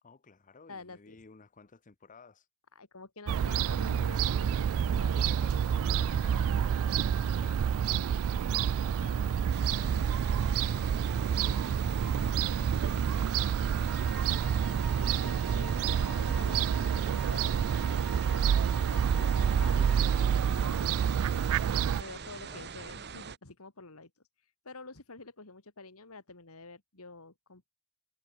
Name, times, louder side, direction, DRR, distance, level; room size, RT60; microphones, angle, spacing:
voice 1, 0.0-2.5 5.1-14.9 22.3-22.7, left 4 dB, 35° left, 0.8 m, -55 dB
voice 2, 0.7-1.2 2.7-5.2 9.9-10.2 14.8-19.9 20.2-21.5 22.0-24.1 24.6-27.7, left 3 dB, 70° left, 2.7 m, -48 dB
Fowl / Gull seagull, 3.3-22.0, right 8 dB, 65° right, 0.3 m, -28 dB
sound 1, 9.5-23.4, right 5 dB, 50° right, 1.5 m, -44 dB
Wind instrument woodwind instrument, 13.9-20.2, left 1 dB, 5° left, 1.4 m, -49 dB
head